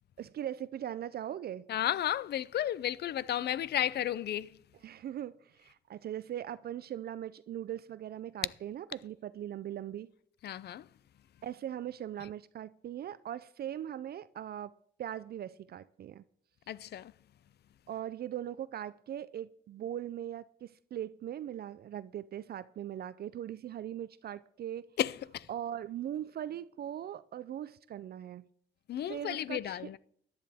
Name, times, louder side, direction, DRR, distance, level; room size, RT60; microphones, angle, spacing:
voice 1, 0.2-1.7 4.8-10.1 11.4-14.7 15.0-16.2 17.9-24.9 25.5-28.5 29.1-29.9, right 11 dB, 50° right, 0.4 m, -40 dB
voice 2, 1.7-4.6 10.4-10.9 16.7-17.1 25.0-25.5 28.9-30.0, left 11 dB, 55° left, 0.5 m, -33 dB
14.0 x 10.5 x 3.5 m
cardioid pair, 90°, 20 cm